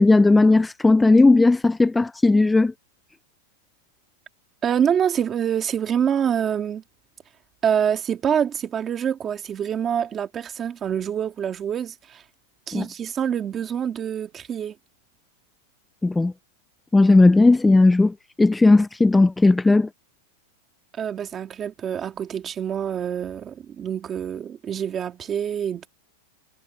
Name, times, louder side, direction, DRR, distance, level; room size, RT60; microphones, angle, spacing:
voice 1, 0.0-2.7 12.7-12.9 16.0-16.3 16.9-19.9, left 2 dB, 5° left, 0.3 m, -16 dB
voice 2, 4.6-6.8 7.6-12.2 12.7-14.8 21.0-25.9, right 8 dB, 20° right, 1.8 m, -26 dB
supercardioid pair, 160°, 0 cm